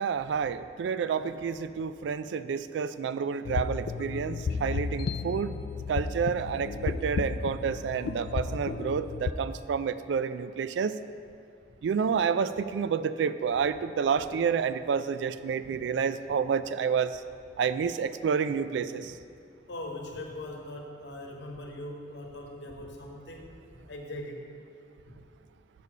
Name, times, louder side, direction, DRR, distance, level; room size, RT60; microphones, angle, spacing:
voice 1, 0.0-5.6 5.9-10.9 11.8-17.2 17.6-19.1, right 6 dB, 75° right, 13 dB, 0.3 m, -29 dB
sound 1, 3.4-9.3, left 5 dB, 55° left, 0.3 m, -33 dB
voice 2, 19.7-24.4 25.1-25.2, left 1 dB, 75° left, 1 dB, 1.0 m, -41 dB
6.8 x 6.6 x 4.9 m, 2.5 s
head